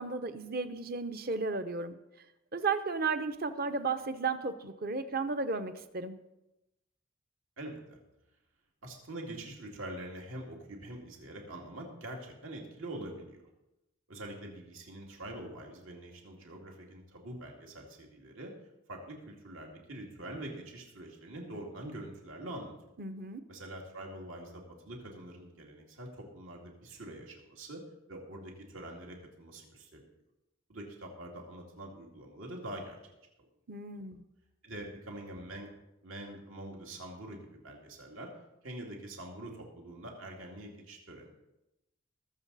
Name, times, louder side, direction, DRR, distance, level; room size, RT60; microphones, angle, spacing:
voice 1, 0.0-2.0 2.5-6.2 23.0-23.4 33.7-34.2, right 4 dB, 45° right, 10 dB, 0.8 m, -34 dB
voice 2, 7.6-8.0 8.8-13.4 14.1-18.5 18.9-22.7 23.5-27.8 28.1-30.0 30.7-33.0 34.6-35.7 36.0-38.3 38.6-41.3, right 1 dB, 80° right, 0 dB, 2.4 m, -44 dB
20.5 x 7.3 x 4.1 m, 0.93 s
head